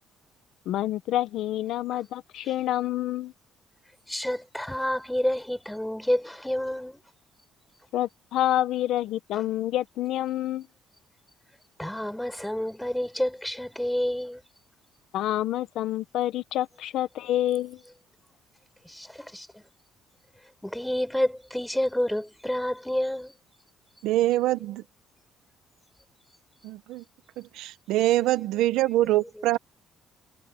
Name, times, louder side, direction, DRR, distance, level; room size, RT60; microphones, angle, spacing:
voice 1, 0.6-3.3 7.9-10.7 15.1-17.8, left 13 dB, 70° left, 1.2 m, -28 dB
voice 2, 4.1-7.0 9.3-9.4 11.8-14.4 18.9-19.5 20.6-23.3 28.2-28.3, left 1 dB, 5° left, 5.2 m, -29 dB
voice 3, 24.0-24.8 26.6-27.0 27.4-29.6, right 15 dB, 90° right, 1.0 m, -24 dB
cardioid pair, 140°, 0 cm